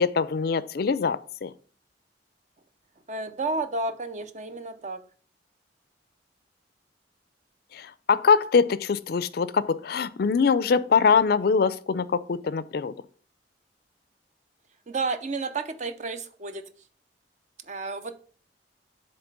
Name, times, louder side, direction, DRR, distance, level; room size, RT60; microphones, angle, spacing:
voice 1, 0.0-1.5 7.7-12.9, left 5 dB, 60° left, 17 dB, 0.4 m, -23 dB
voice 2, 3.1-5.0 14.9-16.7 17.7-18.1, right 3 dB, 40° right, 10 dB, 0.6 m, -31 dB
7.9 x 3.3 x 6.0 m, 0.43 s
head